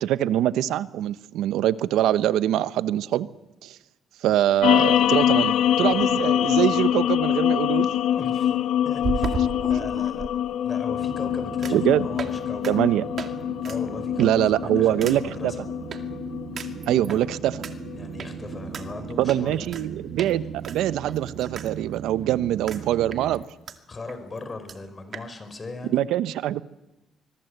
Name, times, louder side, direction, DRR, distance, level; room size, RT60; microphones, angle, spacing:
voice 1, 0.0-3.3 3.6-3.8 4.2-7.9 11.7-12.1 12.7-13.0 14.2-15.5 16.9-17.6 19.2-23.4 25.9-26.6, right 12 dB, 90° right, 15 dB, 0.9 m, -23 dB
sound 1, 4.6-19.2, left 10 dB, 85° left, 0.9 m, -24 dB
voice 2, 8.2-8.6 8.8-10.3 10.6-12.8 13.6-15.7 17.1-17.2 17.9-19.8 23.9-26.0, left 3 dB, 30° left, 9 dB, 5.0 m, -38 dB
sound 2, 9.0-10.3 11.6-11.9 12.2-12.4 12.6-12.7 13.2-13.3 13.6-13.8 14.2-14.5 15.0-15.2 15.9-16.0 16.6-17.2 17.6-17.7 18.2-18.3 18.7-18.8 19.3-19.8 20.2-20.3 20.6-21.7 22.0-22.1 22.7-22.8 23.1-23.8 24.1-24.2 24.4-24.5 24.7-24.8 25.1-25.3, right 6 dB, 55° right, 2.4 m, -33 dB
sound 3, 10.9-23.4, right 8 dB, 70° right, 1.2 m, -39 dB
25.0 x 22.5 x 8.0 m, 1.0 s
cardioid pair, 90°, 0 cm